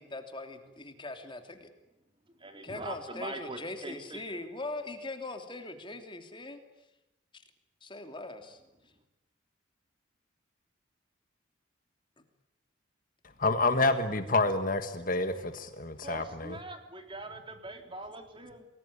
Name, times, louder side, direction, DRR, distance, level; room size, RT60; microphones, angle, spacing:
voice 1, 0.0-1.7 2.6-6.6 7.3-7.4 7.8-8.6, left 2 dB, 25° left, 6 dB, 3.0 m, -41 dB
voice 2, 2.4-4.4 16.0-18.7, right 2 dB, 25° right, 6 dB, 3.7 m, -42 dB
voice 3, 13.4-16.5, left 2 dB, 40° left, 9 dB, 1.6 m, -28 dB
28.5 x 21.0 x 9.9 m, 0.97 s
head